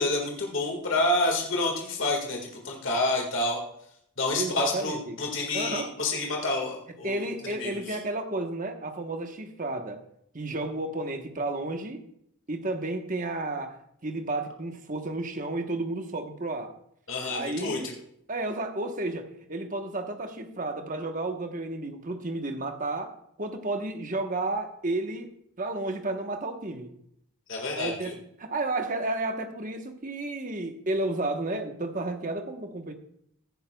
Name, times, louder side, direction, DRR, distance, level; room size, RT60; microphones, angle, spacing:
voice 1, 0.0-2.4 2.6-3.6 4.2-8.0 17.1-17.9 27.5-28.1, left 2 dB, 60° left, 0 dB, 1.8 m, -28 dB
voice 2, 4.4-5.2 5.5-5.9 7.0-10.0 10.3-12.1 12.5-13.8 14.0-16.7 17.3-17.9 18.3-23.1 23.4-25.3 25.6-26.9 27.7-28.1 28.4-32.9, right 2 dB, 35° right, 5 dB, 1.1 m, -32 dB
16.0 x 10.5 x 2.3 m, 0.72 s
head